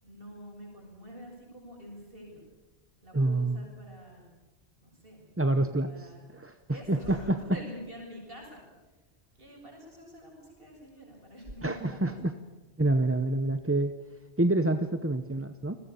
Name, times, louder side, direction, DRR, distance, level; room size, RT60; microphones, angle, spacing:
voice 1, 0.0-2.4 3.0-4.3 4.8-5.3 5.8-6.2 6.7-9.0 9.3-12.2, equal, 55° right, 0 dB, 7.5 m, -47 dB
voice 2, 3.1-3.6 5.4-6.1 6.3-6.5 6.9-7.4 11.6-12.3 12.8-14.0 14.4-15.8, right 2 dB, 15° right, 8 dB, 0.8 m, -27 dB
29.5 x 21.0 x 7.0 m, 1.2 s
omnidirectional pair, 1.2 m